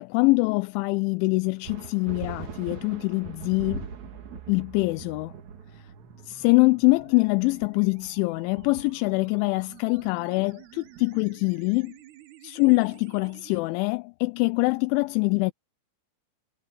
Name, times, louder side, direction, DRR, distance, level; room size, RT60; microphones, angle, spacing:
voice 1, 0.0-3.9 4.5-5.3 6.3-11.9 12.4-15.5, left 26 dB, 85° left, 2.8 m, -24 dB
sound 1, 1.6-11.6, right 5 dB, 45° right, 2.8 m, -42 dB
sound 2, 3.6-13.6, right 9 dB, 80° right, 4.5 m, -50 dB
omnidirectional pair, 5.8 m